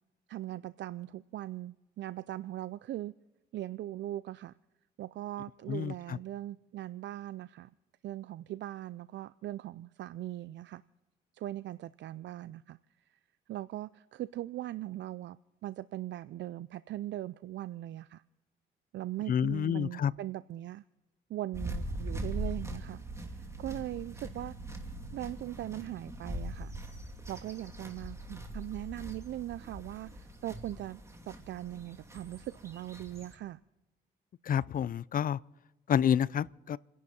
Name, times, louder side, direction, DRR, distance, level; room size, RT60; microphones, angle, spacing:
voice 1, 0.3-3.1 3.5-4.5 5.0-7.7 8.0-10.8 11.3-12.8 13.5-15.4 15.6-18.2 18.9-20.8 21.3-23.0 23.3-24.5 25.1-26.7 27.3-31.0 31.3-33.6, right 14 dB, 65° right, 0.4 m, -40 dB
voice 2, 5.7-6.2 19.3-20.1 34.4-35.4 35.9-36.8, left 9 dB, 45° left, 0.5 m, -29 dB
sound 1, 21.5-33.3, right 1 dB, 15° right, 2.7 m, -41 dB
28.5 x 11.0 x 4.3 m
cardioid pair, 90°, 20 cm